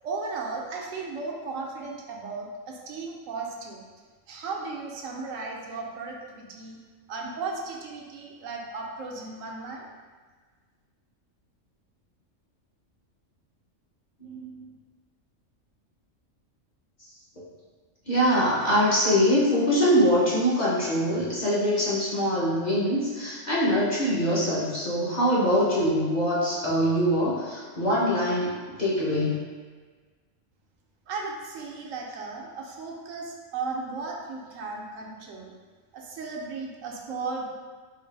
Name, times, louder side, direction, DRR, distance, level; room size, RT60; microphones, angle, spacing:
voice 1, 0.0-3.8 4.3-6.8 7.1-9.9 31.1-35.5 35.9-37.5, right 4 dB, 80° right, 0 dB, 0.9 m, -35 dB
voice 2, 14.2-14.7 18.1-29.4, equal, 40° left, -8 dB, 0.8 m, -23 dB
3.9 x 2.4 x 3.2 m, 1.5 s
omnidirectional pair, 1.4 m